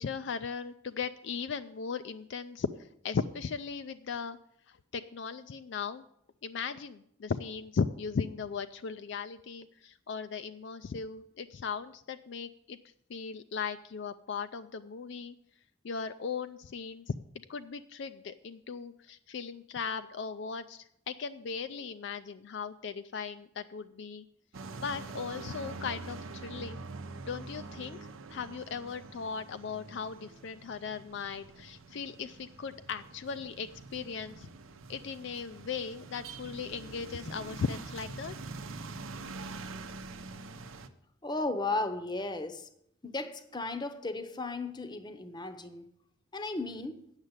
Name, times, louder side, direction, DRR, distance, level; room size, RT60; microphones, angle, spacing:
voice 1, 0.0-4.4 4.7-6.0 6.4-12.8 13.1-15.4 15.8-17.2 17.5-24.2 24.8-26.9 27.2-28.0 28.3-34.5 34.9-38.4, left 5 dB, 55° left, 0.4 m, -37 dB
sound 1, 24.5-40.9, right 3 dB, 75° right, 0.7 m, -45 dB
voice 2, 41.2-42.7 43.0-45.9 46.3-47.1, left 2 dB, 20° left, 0.7 m, -35 dB
8.9 x 6.6 x 7.9 m
head